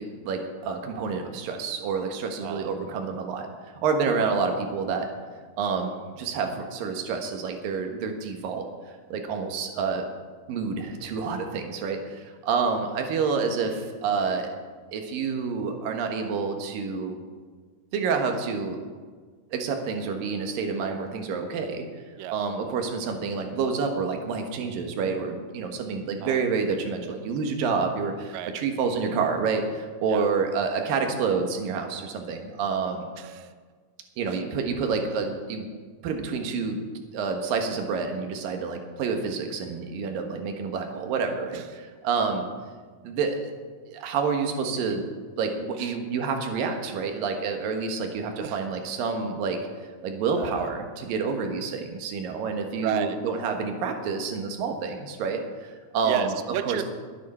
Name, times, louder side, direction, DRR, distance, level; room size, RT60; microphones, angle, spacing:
voice 1, 0.0-3.5 3.8-5.1 5.6-8.7 9.1-10.1 10.5-14.5 14.9-17.2 17.9-18.8 19.5-21.8 22.3-33.1 34.2-35.7 36.0-36.8 37.1-42.5 43.0-43.5 43.9-45.0 45.4-49.6 50.0-56.3 56.7-56.8, right 5 dB, 65° right, 4 dB, 2.8 m, -28 dB
voice 2, 33.2-33.5 34.3-34.4 41.5-41.7 45.8-46.0 48.3-48.7 50.3-50.7 52.8-53.2 56.0-56.8, right 10 dB, 85° right, 10 dB, 2.0 m, -32 dB
22.5 x 9.3 x 4.3 m, 1.5 s
omnidirectional pair, 4.6 m